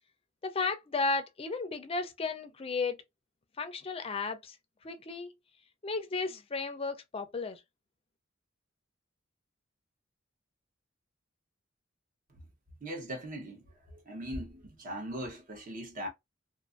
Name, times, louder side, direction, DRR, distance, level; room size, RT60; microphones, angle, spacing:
voice 1, 0.4-3.0 3.6-4.6 4.8-5.3 5.8-7.6, left 4 dB, 30° left, 0.4 m, -34 dB
voice 2, 12.8-13.6 14.1-16.1, equal, 45° right, 0.9 m, -39 dB
2.5 x 2.5 x 2.5 m
head